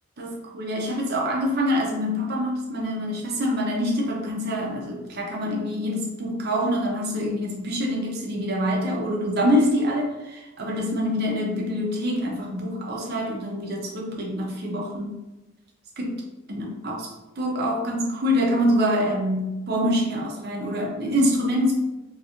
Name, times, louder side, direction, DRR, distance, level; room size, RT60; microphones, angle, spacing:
voice 1, 0.2-15.2 16.0-21.7, equal, 50° right, -2 dB, 0.7 m, -25 dB
2.9 x 2.9 x 2.5 m, 1.1 s
head